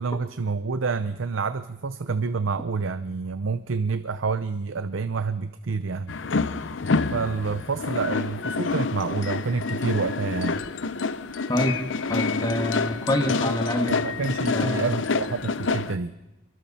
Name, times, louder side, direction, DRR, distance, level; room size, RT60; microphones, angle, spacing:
voice 1, 0.0-6.1 7.1-10.6 13.9-16.2, right 4 dB, 85° right, 12 dB, 0.7 m, -28 dB
sound 1, 6.1-16.0, left 4 dB, 75° left, 0.7 m, -27 dB
voice 2, 12.1-14.0 14.4-15.0, left 1 dB, 20° left, 4 dB, 1.9 m, -26 dB
27.5 x 23.5 x 4.3 m, 0.99 s
head